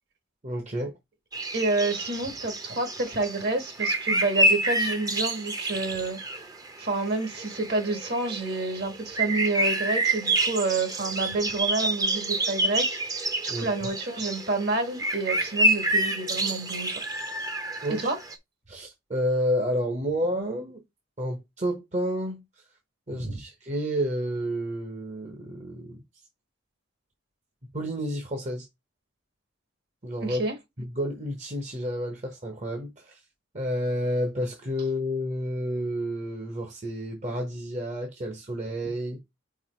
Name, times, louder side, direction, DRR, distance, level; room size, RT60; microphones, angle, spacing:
voice 1, 0.4-0.9 13.5-13.7 17.8-18.1 18.7-20.8 21.2-22.4 23.1-26.0 27.7-28.7 30.0-30.4 30.8-33.2 33.5-39.2, equal, 35° right, 1.0 m, -30 dB
sound 1, 1.3-18.4, right 1 dB, 20° right, 0.7 m, -28 dB
voice 2, 1.5-6.2 6.8-17.0 18.0-18.2 23.1-23.4 30.2-30.5, right 3 dB, 50° right, 1.7 m, -29 dB
4.8 x 4.5 x 4.4 m
head